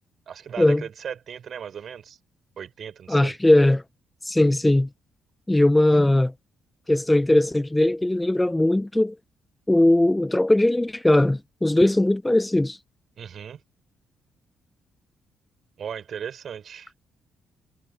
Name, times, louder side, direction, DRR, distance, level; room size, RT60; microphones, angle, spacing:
voice 1, 0.3-2.2 2.6-3.4 13.2-13.6 15.8-16.9, right 8 dB, 55° right, 5.3 m, -36 dB
voice 2, 3.1-3.8 4.2-4.9 5.5-6.3 6.9-9.2 9.7-12.8, left 1 dB, 10° left, 0.3 m, -19 dB
cardioid pair, 90°, 0 cm